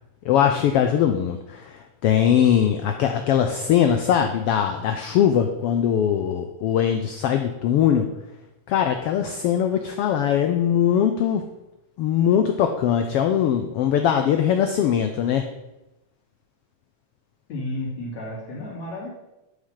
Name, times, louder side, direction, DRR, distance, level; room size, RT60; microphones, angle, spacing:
voice 1, 0.2-8.1 8.7-11.4 12.0-15.5, left 9 dB, 85° left, 6 dB, 1.3 m, -21 dB
voice 2, 17.5-19.1, left 1 dB, 65° left, -4 dB, 4.1 m, -32 dB
11.5 x 5.1 x 5.7 m, 0.96 s
omnidirectional pair, 3.4 m